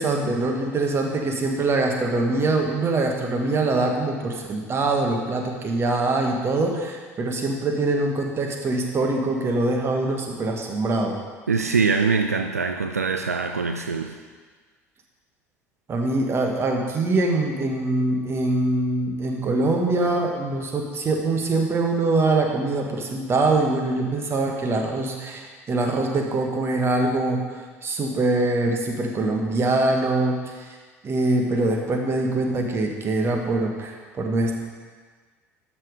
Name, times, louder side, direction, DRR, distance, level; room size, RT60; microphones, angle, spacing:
voice 1, 0.0-11.2 15.9-27.4 27.8-30.7 31.0-34.5, right 2 dB, 30° right, 2 dB, 1.7 m, -23 dB
voice 2, 11.5-14.2, right 5 dB, 85° right, 5 dB, 0.5 m, -23 dB
13.0 x 6.1 x 4.9 m, 1.5 s
figure-of-eight pair, 65°, 8 cm